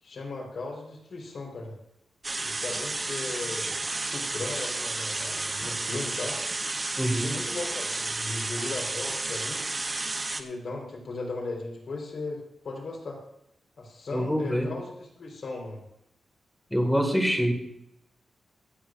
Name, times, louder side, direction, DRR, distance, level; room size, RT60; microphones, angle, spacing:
voice 1, 0.0-1.7 2.4-6.4 7.2-9.6 10.2-13.2 13.8-15.8, left 3 dB, 50° left, 0 dB, 3.8 m, -37 dB
sound 1, 2.2-10.4, right 2 dB, 20° right, 0.7 m, -32 dB
voice 2, 7.0-7.3 14.1-14.7 16.7-17.5, equal, ahead, 3 dB, 1.8 m, -25 dB
25.0 x 8.5 x 2.5 m, 0.80 s
wide cardioid pair, 180°, 0 cm